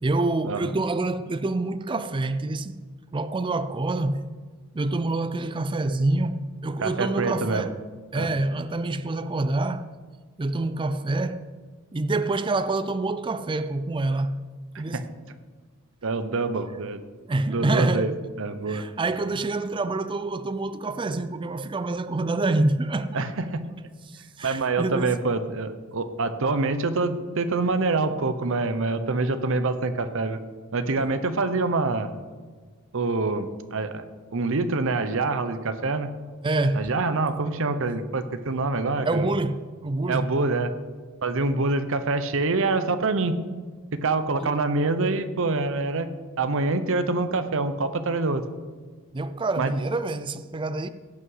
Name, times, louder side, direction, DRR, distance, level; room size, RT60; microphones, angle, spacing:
voice 1, 0.0-2.8 3.1-4.3 4.7-7.8 8.1-9.9 10.4-11.5 11.9-14.4 14.8-15.1 17.3-18.2 18.7-23.3 24.1-25.1 36.4-36.9 39.0-40.3 44.4-44.5 49.1-50.9, right 2 dB, 25° right, 0.4 m, -26 dB
voice 2, 6.8-7.7 8.1-8.3 14.9-15.1 16.0-17.0 17.5-18.1 18.4-18.9 23.1-23.7 24.4-30.4 30.7-32.1 32.9-34.0 34.3-36.1 36.7-39.3 40.1-40.7 41.2-43.4 44.0-48.4 49.6-49.7, right 3 dB, 65° right, 0.8 m, -25 dB
17.0 x 5.7 x 5.6 m
head